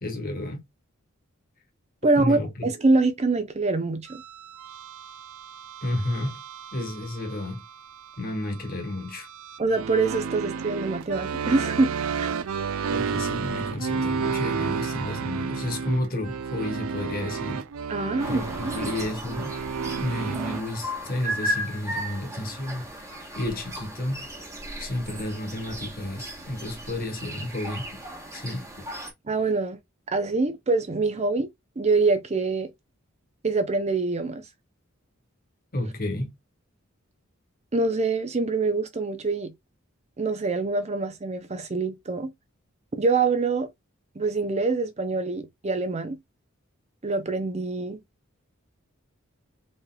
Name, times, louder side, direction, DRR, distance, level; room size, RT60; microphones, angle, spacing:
voice 1, 0.0-0.6 2.1-2.7 5.8-6.4 6.7-7.6 8.2-9.3 12.9-17.7 18.3-19.6 20.0-22.9 23.3-24.3 24.8-28.0 28.3-28.7 35.7-36.3, left 1 dB, 45° left, 1.3 m, -31 dB
voice 2, 2.0-4.2 9.6-12.3 17.9-18.9 29.3-29.8 30.1-31.5 31.8-32.7 33.4-34.4 37.7-39.5 40.2-42.3 42.9-43.7 44.2-46.2 47.0-48.0, right 3 dB, 30° right, 0.6 m, -25 dB
sound 1, 4.1-20.6, right 5 dB, 80° right, 0.4 m, -32 dB
sound 2, 18.2-29.1, right 1 dB, 15° right, 1.4 m, -36 dB
4.1 x 3.3 x 2.2 m
head